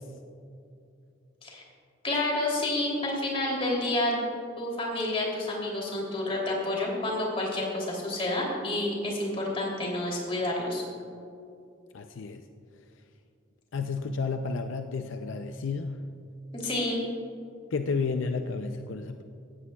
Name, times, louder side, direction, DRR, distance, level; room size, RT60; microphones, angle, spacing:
voice 1, 2.0-4.2 4.6-10.8 16.5-17.0, left 1 dB, 30° left, -2 dB, 3.0 m, -29 dB
voice 2, 11.9-12.4 13.7-16.0 17.7-19.2, left 4 dB, 75° left, 6 dB, 0.5 m, -31 dB
17.0 x 14.0 x 2.3 m, 2.5 s
head